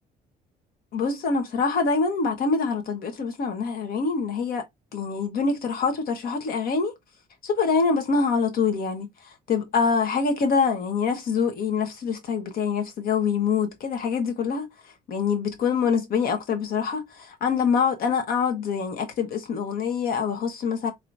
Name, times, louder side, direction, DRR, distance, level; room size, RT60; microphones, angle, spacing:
voice 1, 0.9-4.6 4.9-6.9 7.4-9.1 9.5-14.7 15.1-20.9, left 5 dB, 60° left, 1.2 m, -25 dB
4.5 x 3.0 x 2.6 m
cardioid pair, 110°, 17 cm